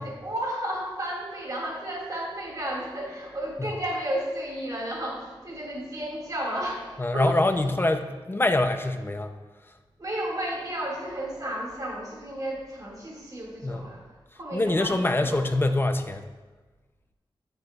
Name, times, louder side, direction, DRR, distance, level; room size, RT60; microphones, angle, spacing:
voice 1, 0.0-7.4 10.0-14.0 14.3-15.5, right 1 dB, 40° right, -3 dB, 2.2 m, -33 dB
voice 2, 7.0-9.3 13.6-13.8 14.5-16.2, left 2 dB, 25° left, 7 dB, 0.6 m, -24 dB
12.5 x 7.9 x 2.4 m, 1.2 s
wide cardioid pair, 85°, 9 cm